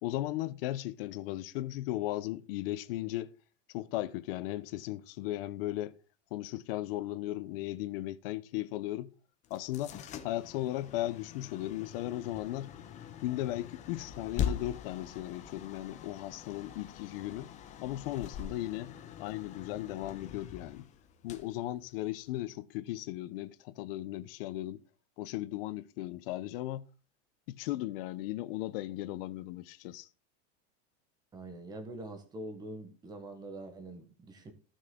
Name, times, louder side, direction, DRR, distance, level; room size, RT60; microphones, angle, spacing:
voice 1, 0.0-3.3 3.7-5.9 6.3-9.1 9.5-10.0 10.2-12.7 13.2-17.5 17.8-18.9 19.2-20.8 21.2-24.8 25.2-26.8 27.6-30.1, left 15 dB, 50° left, 0.8 m, -36 dB
sound 1, 9.4-22.4, left 8 dB, 20° left, 0.7 m, -42 dB
voice 2, 31.3-34.5, right 1 dB, 10° right, 1.2 m, -44 dB
14.5 x 6.4 x 3.8 m
supercardioid pair, 170°, 36 cm